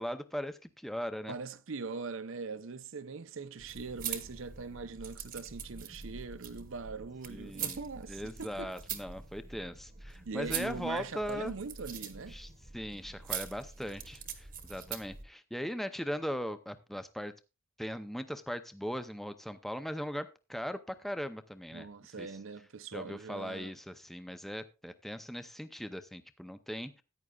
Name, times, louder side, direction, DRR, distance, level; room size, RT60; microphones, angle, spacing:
voice 1, 0.0-1.4 7.3-7.8 8.1-11.5 12.3-17.3 17.8-21.9 22.2-22.3 22.9-27.0, equal, ahead, 0.5 m, -39 dB
voice 2, 1.3-8.7 10.2-12.4 21.7-23.7, right 4 dB, 60° right, 0.6 m, -41 dB
sound 1, 3.6-15.2, right 7 dB, 40° right, 1.1 m, -43 dB
14.0 x 9.7 x 2.3 m
head